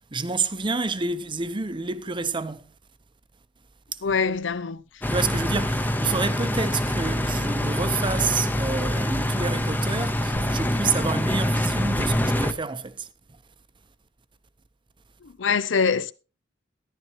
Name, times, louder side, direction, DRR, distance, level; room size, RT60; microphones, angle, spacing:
voice 1, 0.1-2.7 3.9-4.0 5.1-13.1, right 4 dB, 25° right, 0.7 m, -28 dB
voice 2, 4.0-4.8 15.2-16.1, left 5 dB, 75° left, 0.6 m, -24 dB
sound 1, 5.0-12.5, left 1 dB, 10° left, 0.7 m, -25 dB
13.5 x 11.0 x 2.9 m
head